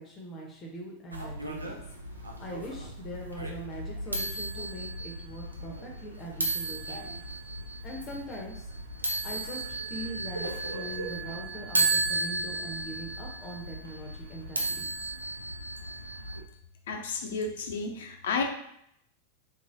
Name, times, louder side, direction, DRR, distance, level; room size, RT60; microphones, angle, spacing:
voice 1, 0.0-1.8 2.4-7.2 7.8-8.7 9.2-14.8, right 1 dB, 25° left, -1 dB, 0.7 m, -41 dB
sound 1, 1.1-16.4, right 2 dB, 80° right, 0.5 m, -34 dB
voice 2, 16.9-18.4, left 4 dB, 60° left, 4 dB, 0.5 m, -32 dB
3.9 x 3.0 x 2.6 m, 0.73 s
figure-of-eight pair, 90°, 0 cm